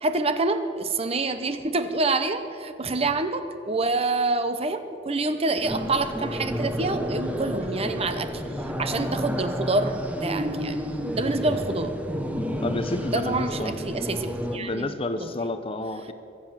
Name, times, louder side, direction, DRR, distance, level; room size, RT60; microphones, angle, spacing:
voice 1, 0.0-8.4 8.8-10.8 11.1-11.9 13.1-15.3, right 3 dB, 30° right, 9 dB, 0.8 m, -27 dB
sound 1, 5.6-14.6, equal, 10° right, 1.0 m, -30 dB
voice 2, 12.6-13.7 14.5-16.1, left 2 dB, 30° left, 10 dB, 0.7 m, -30 dB
23.5 x 8.0 x 7.3 m, 2.5 s
head